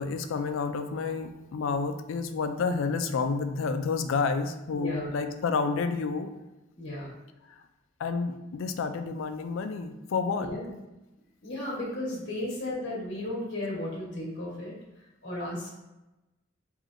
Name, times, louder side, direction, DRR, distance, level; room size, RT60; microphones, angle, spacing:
voice 1, 0.0-6.3 7.5-7.6 8.0-10.5, left 4 dB, 85° left, 7 dB, 0.4 m, -30 dB
voice 2, 4.7-5.1 6.8-7.1 10.4-10.7 11.4-14.7 15.2-15.7, left 1 dB, 55° left, -5 dB, 1.1 m, -34 dB
4.8 x 2.7 x 2.5 m, 0.99 s
head